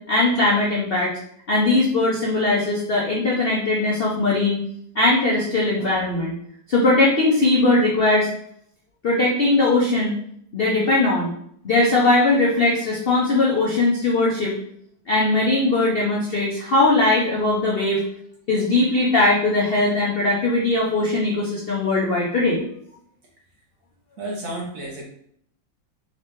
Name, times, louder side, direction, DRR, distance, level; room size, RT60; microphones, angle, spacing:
voice 1, 0.1-1.1 1.5-4.6 4.9-6.3 6.7-8.3 9.0-10.1 10.5-11.3 11.6-14.5 15.1-18.0 18.5-22.6, left 2 dB, 70° left, -5 dB, 0.5 m, -20 dB
voice 2, 24.2-25.1, right 1 dB, 55° right, -2 dB, 1.1 m, -31 dB
3.8 x 2.9 x 3.5 m, 0.68 s
omnidirectional pair, 2.0 m